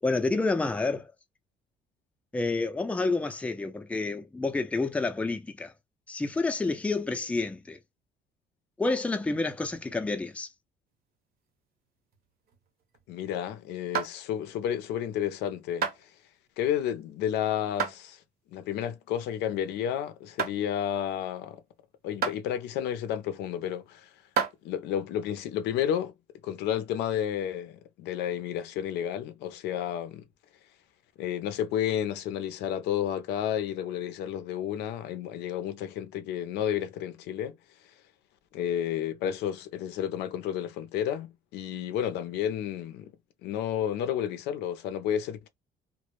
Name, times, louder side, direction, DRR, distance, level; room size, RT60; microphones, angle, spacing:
voice 1, 0.0-1.1 2.3-5.7 6.1-7.8 8.8-10.5, left 3 dB, 10° left, 0.4 m, -29 dB
sound 1, 11.6-13.3 13.9-14.5 15.1-15.3 15.8-16.1 16.7-17.2 17.8-18.0 18.5-18.6 19.3-19.4 19.8-20.0 20.4-20.6 21.3-21.4 22.2-22.4 23.2-23.3 24.1-24.6, right 7 dB, 60° right, 0.9 m, -31 dB
voice 2, 13.1-16.1 16.6-18.2 18.5-21.6 22.0-24.1 24.6-26.1 26.4-30.2 31.2-37.6 38.5-43.1 43.4-45.5, left 10 dB, 85° left, 0.5 m, -31 dB
2.1 x 2.0 x 2.9 m
cardioid pair, 110°, 17 cm